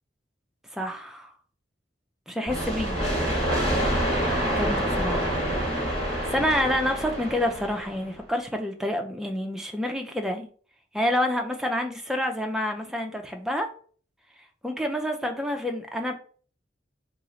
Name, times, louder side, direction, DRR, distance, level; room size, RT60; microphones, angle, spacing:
voice 1, 0.7-1.3 2.3-3.0 4.6-5.3 5.9-10.5 10.9-13.7 14.6-16.1, left 1 dB, 5° right, 0.4 m, -28 dB
sound 1, 2.5-8.0, equal, 30° left, 1.4 m, -27 dB
3.0 x 2.4 x 3.8 m
head